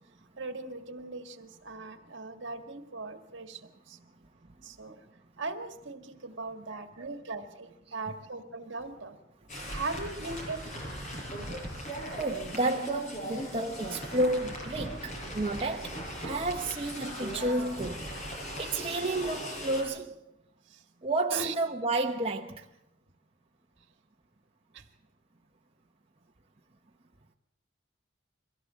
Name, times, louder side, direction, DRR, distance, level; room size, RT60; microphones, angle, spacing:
voice 1, 0.4-4.0 4.6-5.0 5.4-9.2 9.7-10.6 16.3-16.4 20.7-20.8 21.3-21.5 24.7-24.8, right 3 dB, 65° right, 1.8 m, -39 dB
voice 2, 6.7-7.1 12.1-18.1 18.6-20.2 21.0-22.6, right 2 dB, 30° right, 0.9 m, -31 dB
sound 1, 9.5-19.8, equal, 40° left, 7.8 m, -38 dB
23.0 x 16.5 x 7.5 m
head